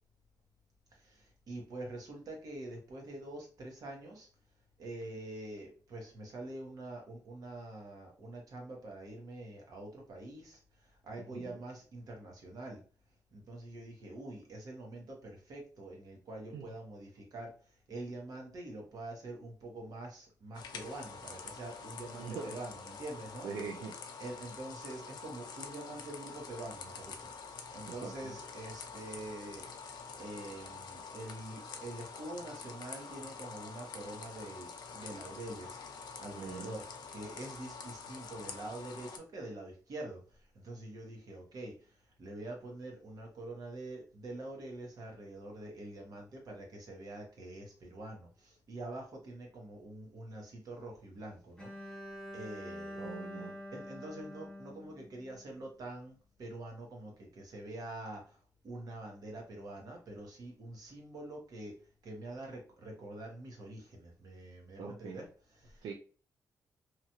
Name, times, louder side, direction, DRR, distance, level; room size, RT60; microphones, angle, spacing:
voice 1, 0.9-4.3 4.8-12.8 13.3-17.5 17.9-23.5 24.2-27.3 27.7-36.8 37.1-52.0 52.3-53.1 53.7-58.4 58.6-61.7 62.0-65.2 65.6-65.9, right 1 dB, 60° right, 0 dB, 1.1 m, -45 dB
sound 1, 20.5-39.2, left 5 dB, 75° left, 0.5 m, -47 dB
voice 2, 22.2-22.6 23.4-23.9 27.9-28.3 36.3-36.7 53.0-53.6 64.8-65.2 65.8-65.9, right 5 dB, 85° right, 0 dB, 0.5 m, -42 dB
Bowed string instrument, 51.6-55.6, equal, 15° left, 0.6 m, -46 dB
2.9 x 2.4 x 2.7 m, 0.38 s
wide cardioid pair, 145°, 7 cm